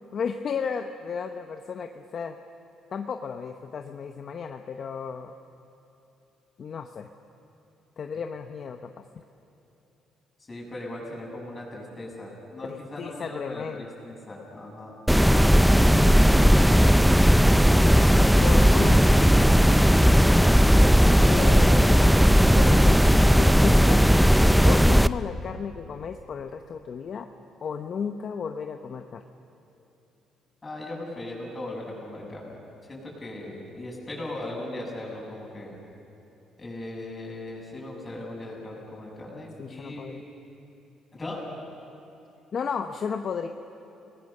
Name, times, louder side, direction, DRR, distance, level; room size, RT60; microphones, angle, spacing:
voice 1, 0.1-2.4 2.9-5.3 6.6-7.1 8.0-8.9 12.6-13.9 18.4-19.3 21.2-22.2 22.5-23.1 23.4-24.0 24.6-27.3 27.6-29.2 39.6-40.2 42.5-43.5, left 6 dB, 45° left, 6 dB, 0.9 m, -34 dB
voice 2, 10.5-15.0 30.6-32.5 32.8-35.8 36.6-40.3 41.1-41.4, left 1 dB, 20° left, -3 dB, 6.9 m, -38 dB
sound 1, 15.1-25.1, equal, ahead, 0.4 m, -17 dB
29.5 x 19.5 x 6.7 m, 3.0 s
cardioid pair, 130°, 0 cm